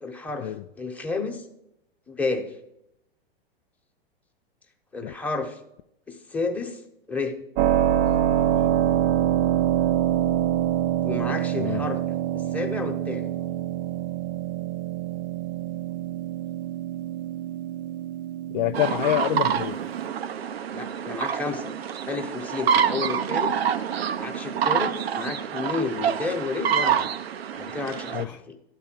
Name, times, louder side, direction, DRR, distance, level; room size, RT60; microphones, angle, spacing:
voice 1, 0.0-1.5 2.1-2.4 4.9-5.6 6.1-6.8 7.1-7.3 11.0-12.0 12.3-13.3 20.7-21.7 22.1-23.6 24.2-27.1 27.5-28.6, left 3 dB, 5° left, 2 dB, 1.1 m, -31 dB
Keyboard (musical), 7.6-20.1, right 11 dB, 30° right, 0.4 m, -26 dB
voice 2, 18.5-19.8 28.1-28.4, left 14 dB, 50° left, 8 dB, 0.4 m, -26 dB
sound 1, 18.7-28.2, right 8 dB, 85° right, 0.7 m, -27 dB
12.0 x 4.2 x 7.6 m, 0.82 s
hypercardioid pair, 120°, 30 cm